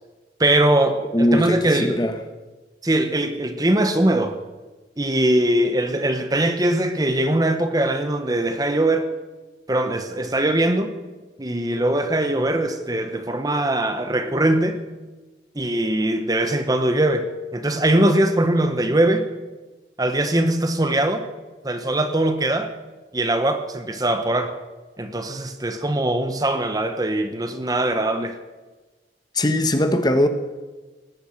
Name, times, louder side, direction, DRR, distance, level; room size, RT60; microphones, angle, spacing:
voice 1, 0.4-2.0 2.8-4.4 5.0-9.1 9.7-11.0 11.4-14.8 15.5-17.3 17.5-19.3 20.0-21.3 21.6-22.7 23.1-24.6 25.0-28.4, right 1 dB, 20° right, 8 dB, 1.0 m, -21 dB
voice 2, 1.1-2.2 29.3-30.3, left 1 dB, 25° left, 8 dB, 1.1 m, -20 dB
19.0 x 9.1 x 7.8 m, 1.2 s
head